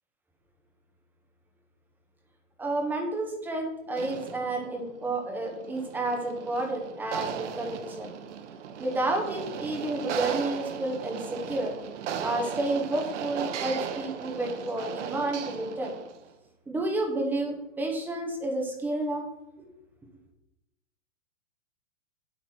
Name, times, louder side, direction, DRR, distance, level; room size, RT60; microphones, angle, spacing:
voice 1, 2.6-8.1 8.8-11.8 12.2-15.9 16.7-19.2 19.6-19.7, right 2 dB, 5° right, 1 dB, 0.9 m, -30 dB
sound 1, 3.9-16.3, right 7 dB, 70° right, 1.1 m, -37 dB
8.0 x 7.7 x 4.4 m, 0.91 s
supercardioid pair, 170°, 37 cm